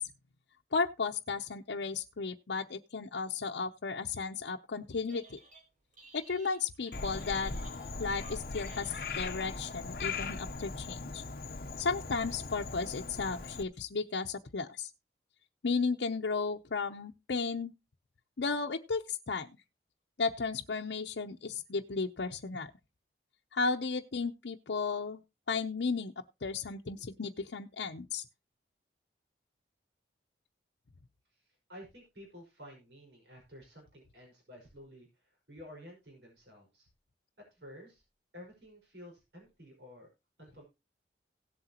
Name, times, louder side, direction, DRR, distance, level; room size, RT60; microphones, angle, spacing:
voice 1, 0.7-5.4 6.1-7.5 8.0-11.2 11.8-14.9 15.6-17.7 18.4-19.5 20.2-22.7 23.5-25.2 25.5-26.1 26.4-28.2, left 4 dB, 85° left, 2 dB, 0.7 m, -34 dB
Telephone, 4.9-5.6 5.9-9.6, right 3 dB, 45° right, 4.0 m, -56 dB
Frog, 6.9-13.6, left 4 dB, 55° left, 0.9 m, -39 dB
voice 2, 31.7-35.1 35.5-36.9 37.5-38.0 38.3-40.1 40.4-40.6, equal, 80° right, 1 dB, 5.6 m, -52 dB
17.0 x 7.9 x 2.9 m, 0.26 s
head